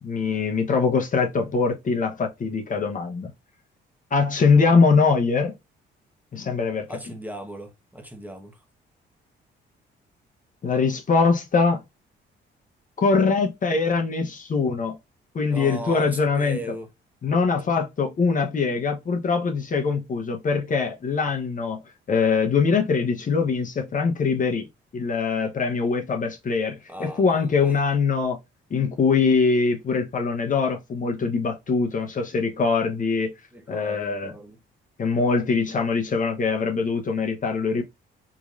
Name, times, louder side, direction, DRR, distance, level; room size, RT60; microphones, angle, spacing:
voice 1, 0.0-3.3 4.1-5.5 6.3-6.9 10.6-11.8 13.0-15.0 15.3-16.6 17.2-21.8 22.1-24.7 24.9-28.4 28.7-33.3 33.7-34.3 35.0-37.8, left 4 dB, 40° left, 0.9 m, -22 dB
voice 2, 6.9-8.6 15.5-16.9 26.9-27.8 33.5-34.6, right 1 dB, 10° right, 1.0 m, -38 dB
3.9 x 3.0 x 2.4 m
cardioid pair, 90°, 20 cm